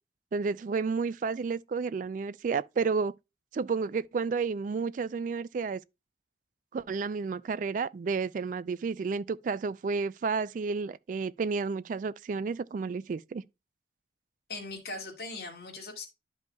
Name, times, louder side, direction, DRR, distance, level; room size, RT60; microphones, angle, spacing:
voice 1, 0.3-3.1 3.5-5.8 6.7-13.4, right 5 dB, 45° right, 0.3 m, -31 dB
voice 2, 14.5-16.0, left 3 dB, 60° left, 2.1 m, -39 dB
11.5 x 5.2 x 2.3 m
head